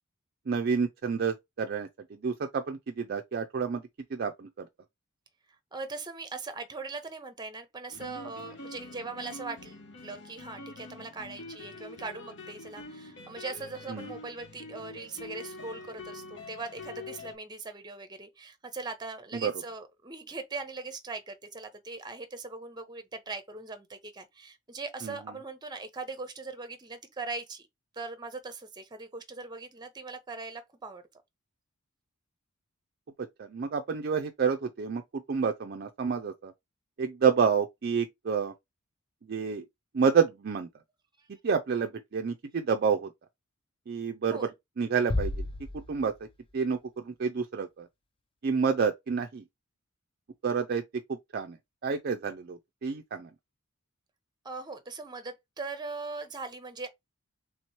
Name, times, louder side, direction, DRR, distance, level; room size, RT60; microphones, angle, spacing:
voice 1, 0.5-3.8 4.1-4.7 13.9-14.1 19.3-19.5 25.0-25.2 33.2-36.5 37.0-38.5 39.3-39.6 39.9-40.7 41.3-43.1 43.9-44.5 44.8-45.5 45.7-46.3 46.5-47.9 48.4-49.4 50.4-51.6 51.8-53.3, right 6 dB, 45° right, 0.4 m, -29 dB
voice 2, 5.7-27.7 27.9-31.0 41.2-41.3 44.3-44.5 54.4-56.9, right 3 dB, 20° right, 0.7 m, -40 dB
sound 1, 7.9-17.4, left 2 dB, 60° left, 1.2 m, -45 dB
sound 2, 45.1-46.5, left 2 dB, 25° left, 0.4 m, -33 dB
3.4 x 3.0 x 4.4 m
head